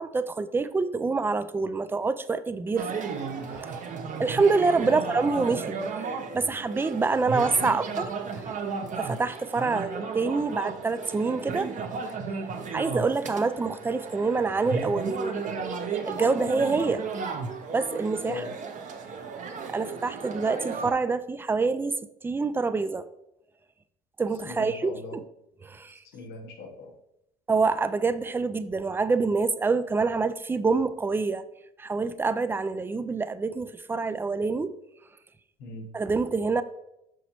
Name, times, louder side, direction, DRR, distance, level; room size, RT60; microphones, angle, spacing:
voice 1, 0.0-2.9 3.5-3.8 4.2-6.0 6.3-8.1 9.0-11.7 12.7-15.4 16.1-17.1 17.7-18.4 19.7-22.0 22.2-23.1 24.2-25.2 25.6-26.0 27.5-31.5 31.8-34.7 35.9-36.6, right 4 dB, 15° right, 0.3 m, -26 dB
sound 1, 2.8-20.9, right 5 dB, 50° right, 0.9 m, -34 dB
voice 2, 4.8-5.3 7.6-7.7 16.6-16.7 18.2-18.5 24.5-25.2 26.1-26.9 35.6-35.9, left 3 dB, 85° left, 1.1 m, -39 dB
6.2 x 5.3 x 2.9 m
cardioid pair, 110°, 17 cm